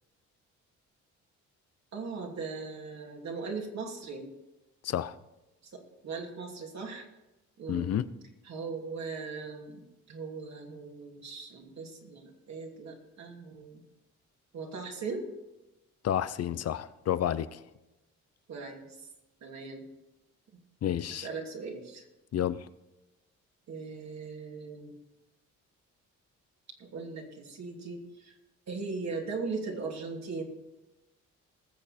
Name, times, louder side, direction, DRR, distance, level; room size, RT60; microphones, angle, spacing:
voice 1, 1.9-4.3 5.7-7.0 7.6-7.9 8.5-13.8 14.5-15.3 18.5-18.9 19.4-19.8 21.2-22.1 23.7-24.9 26.8-28.4 28.7-30.4, right 4 dB, 60° right, 0 dB, 2.7 m, -39 dB
voice 2, 4.8-5.2 7.7-8.0 16.0-17.6 20.8-21.3 22.3-22.7, left 10 dB, 55° left, 15 dB, 0.7 m, -30 dB
20.0 x 7.1 x 4.4 m, 0.99 s
cardioid pair, 90°, 30 cm